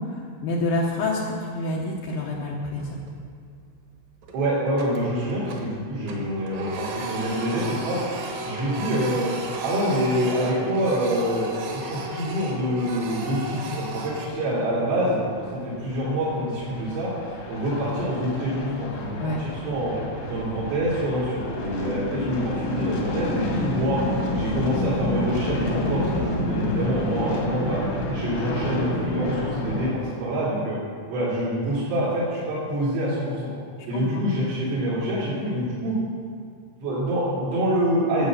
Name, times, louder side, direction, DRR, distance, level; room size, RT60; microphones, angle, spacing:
voice 1, 0.4-3.0 19.2-19.4 33.9-34.2, left 2 dB, 85° left, -4 dB, 2.0 m, -27 dB
Printer, 2.8-3.3 3.6-3.8 4.2-5.8 6.0-14.3, right 2 dB, 65° right, 2.3 m, -34 dB
voice 2, 4.3-8.0 8.4-9.3 9.6-17.1 17.5-20.0 20.3-24.0 24.3-27.8 28.1-30.8 31.1-33.5 33.9-36.0 36.8-38.3, equal, 85° right, -11 dB, 5.6 m, -26 dB
sound 1, 15.1-29.9, left 1 dB, 65° left, 1.7 m, -29 dB
12.5 x 7.6 x 6.5 m, 2.1 s
omnidirectional pair, 5.7 m